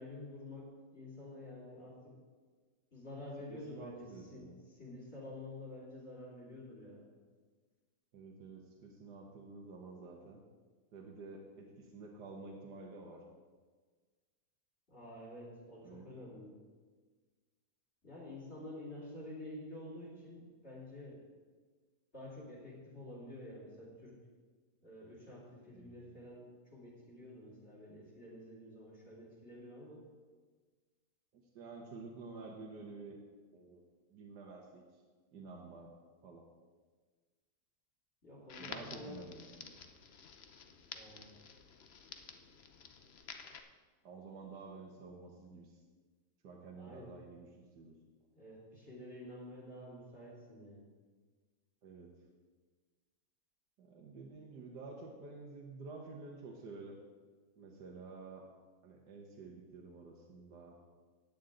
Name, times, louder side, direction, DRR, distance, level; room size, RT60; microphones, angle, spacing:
voice 1, 0.0-2.1 2.9-7.1 14.9-16.5 18.0-21.2 22.1-24.2 24.8-30.0 38.2-39.2 40.9-41.3 46.8-47.1 48.3-50.9, left 1 dB, 35° left, -5 dB, 3.9 m, -49 dB
voice 2, 3.5-4.6 8.1-10.4 10.9-13.2 15.8-16.1 25.7-26.1 31.3-33.2 33.5-33.8 34.1-34.8 35.3-35.9 36.2-36.5 38.6-39.8 44.0-45.8 46.4-47.9 51.8-52.1 53.8-57.0 57.6-58.5 58.8-60.8, right 3 dB, 75° right, -1 dB, 1.7 m, -50 dB
Crackle, 38.5-43.6, left 6 dB, 55° left, 0.7 m, -51 dB
15.5 x 9.4 x 3.8 m, 1.4 s
omnidirectional pair, 1.9 m